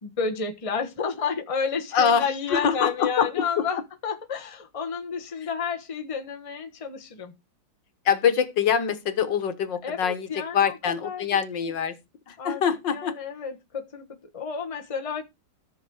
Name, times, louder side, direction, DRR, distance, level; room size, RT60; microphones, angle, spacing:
voice 1, 0.0-7.3 9.8-11.7 12.4-12.6 12.9-14.1 14.3-15.2, left 6 dB, 20° left, 1.1 m, -31 dB
voice 2, 1.9-3.6 8.1-10.3 10.5-12.0 12.3-13.2, left 7 dB, 70° left, 1.9 m, -24 dB
13.5 x 6.2 x 4.7 m
omnidirectional pair, 2.1 m